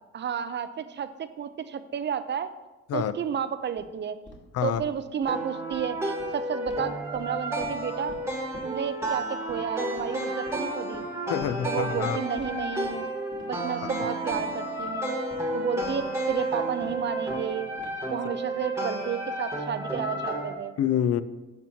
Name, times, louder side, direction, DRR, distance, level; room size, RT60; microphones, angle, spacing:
voice 1, 0.1-2.5 2.9-4.2 4.6-8.2 8.6-11.0 11.6-13.0 13.5-15.2 15.5-17.7 18.1-20.8, right 7 dB, 35° right, 12 dB, 0.4 m, -32 dB
sound 1, 3.8-3.9 4.3-4.4 4.7-4.9 5.2-5.3 5.6-5.8 6.2-6.3 6.7-6.8 7.1-7.8 8.1-8.2 8.5-8.7 9.0-9.1 9.5-9.7 10.0-10.1 10.5-10.6 10.9-11.1 11.4-11.5 11.9-12.0 12.4-12.5 12.8-13.0 13.3-13.5 13.8-13.9 14.3-14.4 14.8-14.9 15.3-15.4 15.8-15.9 16.3-16.4 16.8-16.9 17.3-17.5 17.8-18.1, left 2 dB, 40° left, 1.9 m, -46 dB
sound 2, 5.3-20.5, right 1 dB, 10° right, 1.3 m, -31 dB
voice 2, 11.3-12.2 20.8-21.2, left 9 dB, 55° left, 15 dB, 0.4 m, -26 dB
12.0 x 4.3 x 2.7 m, 1.1 s
cardioid pair, 90°, 30 cm